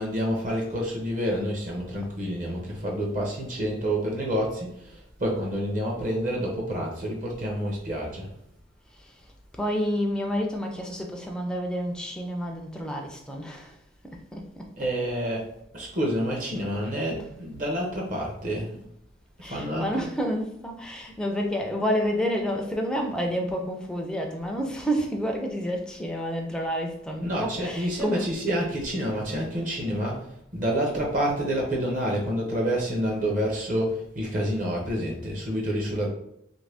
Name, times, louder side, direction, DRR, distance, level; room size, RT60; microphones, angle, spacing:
voice 1, 0.0-8.3 14.8-15.5 15.7-18.8 19.4-20.1 27.2-30.3 30.5-36.1, equal, 45° right, -1 dB, 0.7 m, -28 dB
voice 2, 9.6-13.8 14.1-14.8 18.6-18.7 19.4-28.3, equal, 5° left, 1 dB, 0.4 m, -29 dB
3.0 x 2.6 x 3.3 m, 0.76 s
head